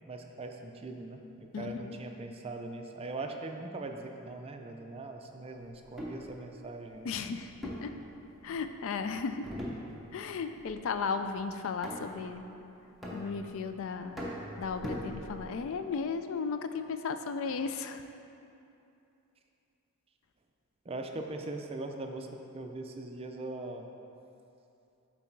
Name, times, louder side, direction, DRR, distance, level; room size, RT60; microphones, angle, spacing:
voice 1, 0.1-7.1 20.9-22.3 22.5-23.8, right 2 dB, 25° right, 4 dB, 0.4 m, -41 dB
voice 2, 1.5-2.0 7.0-7.5 7.8-7.9 8.4-9.5 10.1-12.4 13.1-14.2 14.6-18.0, left 5 dB, 65° left, 9 dB, 0.3 m, -35 dB
sound 1, 5.8-6.3 7.6-8.7 9.4-10.3 10.6-11.0 11.8-12.3 13.0-13.7 14.2-15.6, equal, ahead, 0.9 m, -40 dB
8.2 x 4.0 x 4.6 m, 2.8 s
head